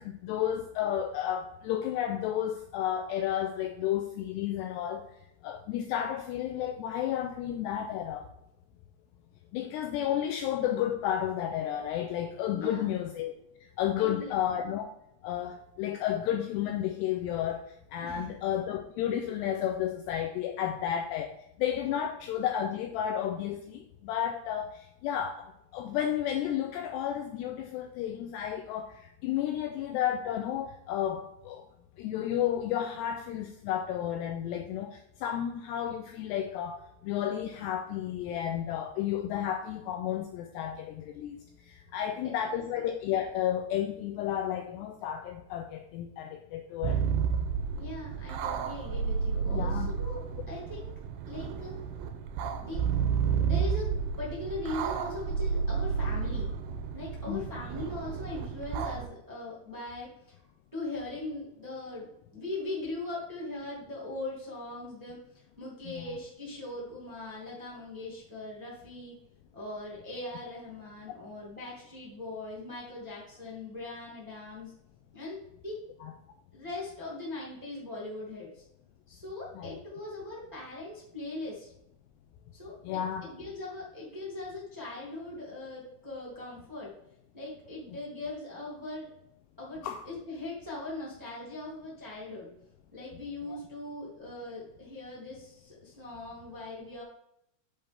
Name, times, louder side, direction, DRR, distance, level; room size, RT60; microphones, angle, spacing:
voice 1, 0.0-5.0 5.4-8.3 9.5-13.3 13.8-14.9 15.2-17.6 17.9-21.3 21.6-29.0 29.2-31.6 32.0-41.4 41.7-47.0 49.5-49.9 57.3-57.5 65.9-66.2 76.0-76.1 79.6-79.8 82.8-83.2 89.8-90.0 93.5-93.6, left 10 dB, 85° left, 5 dB, 2.5 m, -32 dB
voice 2, 12.5-13.0 14.0-14.4 18.0-18.3 42.0-42.6 47.7-50.2 50.5-50.9 51.2-51.8 52.6-52.8 53.4-56.5 56.9-60.4 60.7-69.1 69.5-74.7 75.1-75.8 76.5-78.6 79.1-81.7 82.5-86.9 87.3-89.1 89.6-92.5 92.9-97.0, left 2 dB, 5° right, -6 dB, 1.6 m, -40 dB
sound 1, 46.8-59.1, right 6 dB, 80° right, 2.8 m, -31 dB
8.6 x 7.1 x 3.6 m, 0.79 s
omnidirectional pair, 5.4 m